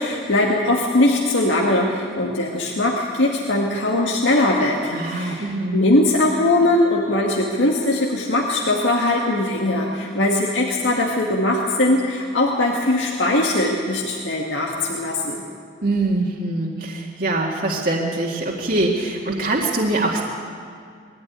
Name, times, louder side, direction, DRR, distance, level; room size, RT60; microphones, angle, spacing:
voice 1, 0.0-15.4, left 1 dB, 85° left, -2 dB, 1.9 m, -20 dB
voice 2, 4.9-5.8 15.8-20.2, right 2 dB, 50° right, -2 dB, 1.9 m, -23 dB
21.0 x 14.5 x 9.5 m, 2.2 s
head